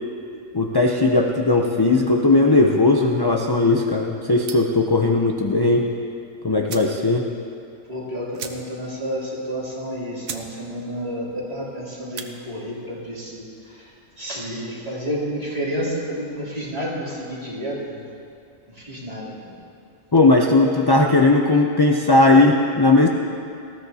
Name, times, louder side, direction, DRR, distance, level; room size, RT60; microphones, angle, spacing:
voice 1, 0.5-5.9 6.4-7.3 20.1-23.1, left 2 dB, 35° left, 1 dB, 0.4 m, -17 dB
sound 1, 4.4-4.8 6.2-6.3 6.6-7.0 7.4-7.5 7.7-7.8 8.3-8.9 9.3-9.4 9.9-10.0 10.2-10.5 10.9-11.2 12.0-12.3, right 6 dB, 90° right, 1.3 m, -36 dB
voice 2, 7.9-18.0 18.7-19.5, equal, 30° right, -7 dB, 3.2 m, -30 dB
19.5 x 15.0 x 2.8 m, 2.4 s
omnidirectional pair, 1.4 m